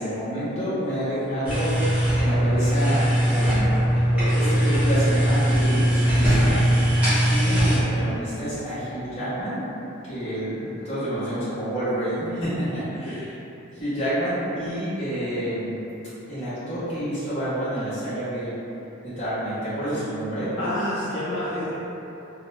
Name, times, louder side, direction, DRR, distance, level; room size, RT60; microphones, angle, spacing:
voice 1, 0.0-1.8 2.2-3.7 4.3-6.6 7.1-9.6 10.1-13.3 13.7-15.8 16.3-18.5 19.0-20.5, equal, 30° left, -14 dB, 1.1 m, -28 dB
sound 1, 1.4-7.8, equal, 5° right, 0.7 m, -20 dB
voice 2, 20.6-21.8, left 1 dB, 65° left, -8 dB, 0.4 m, -29 dB
2.8 x 2.2 x 2.5 m, 3.0 s
head